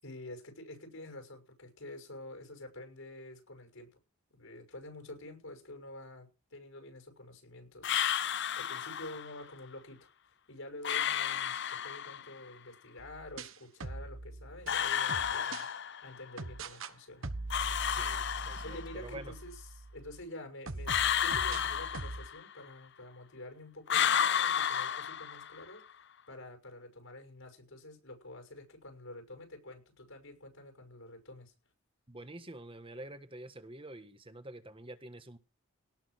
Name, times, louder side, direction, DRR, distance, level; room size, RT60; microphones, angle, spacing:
voice 1, 0.0-4.0 4.3-10.1 10.5-17.3 18.6-31.5, left 1 dB, 65° left, 6 dB, 6.1 m, -48 dB
sound 1, 7.8-9.3 10.8-12.3 14.7-16.2 17.5-19.1 20.9-22.6 23.9-25.7, left 9 dB, 50° left, 0.7 m, -32 dB
sound 2, 13.0-15.7 16.4-16.9 17.2-20.2 20.7-22.3, right 2 dB, 60° right, 1.3 m, -42 dB
voice 2, 17.9-19.3 32.1-35.4, right 1 dB, 25° right, 10 dB, 1.4 m, -47 dB
18.0 x 6.4 x 6.5 m, 0.31 s
head